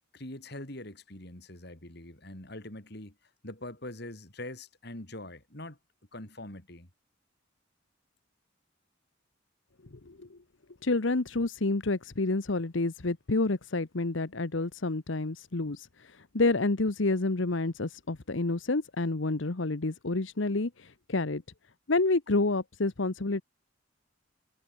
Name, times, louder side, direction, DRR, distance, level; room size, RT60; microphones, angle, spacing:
voice 1, 0.1-5.8 6.1-6.9, left 1 dB, 50° left, 3.5 m, -43 dB
voice 2, 10.1-10.4 10.8-21.4 21.9-23.4, left 2 dB, 70° left, 1.0 m, -29 dB
head